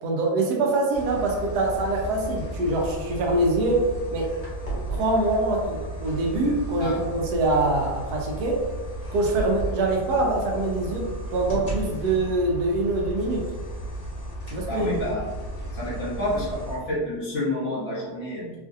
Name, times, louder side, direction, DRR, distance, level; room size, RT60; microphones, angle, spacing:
voice 1, 0.0-3.8 4.1-4.3 4.9-8.6 9.1-13.5 14.5-14.9, right 2 dB, 90° right, 0 dB, 1.2 m, -24 dB
sound 1, 0.9-16.8, right 1 dB, 30° left, 0.8 m, -34 dB
voice 2, 14.7-15.2 15.7-18.5, left 1 dB, 55° left, -7 dB, 1.1 m, -29 dB
3.1 x 2.5 x 2.5 m, 1.3 s
omnidirectional pair, 1.7 m